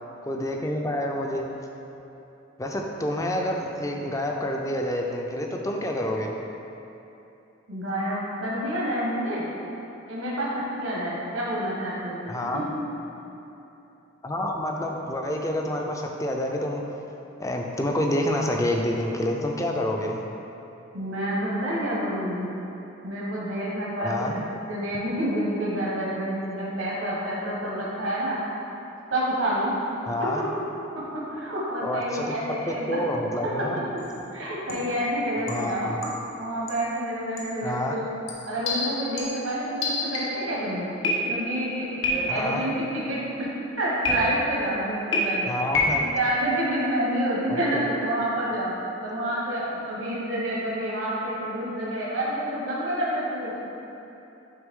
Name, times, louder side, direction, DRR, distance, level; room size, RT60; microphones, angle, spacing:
voice 1, 0.2-1.5 2.6-6.3 12.3-12.7 14.2-16.8 17.4-20.2 24.0-24.4 30.1-30.4 31.8-32.3 32.7-33.8 35.5-36.0 37.6-38.0 42.3-42.7 45.5-46.0 47.5-47.8, left 1 dB, 15° left, 1 dB, 0.5 m, -28 dB
voice 2, 7.7-9.5 10.1-12.6 20.9-22.5 23.0-28.4 29.1-29.7 30.2-30.4 31.1-33.0 34.3-35.9 36.4-38.1 38.5-40.9 41.3-43.5 43.8-45.5 45.9-48.7 49.0-53.6, right 1 dB, 80° right, -7 dB, 1.3 m, -28 dB
sound 1, 34.0-34.2 34.7-35.0 35.5-36.4 36.7-36.9 37.4-37.6 38.3-40.5 41.0-41.6 42.0-42.6 44.0-44.6 45.1-46.2, left 1 dB, 75° left, 1.1 m, -28 dB
9.4 x 3.4 x 3.7 m, 3.0 s
head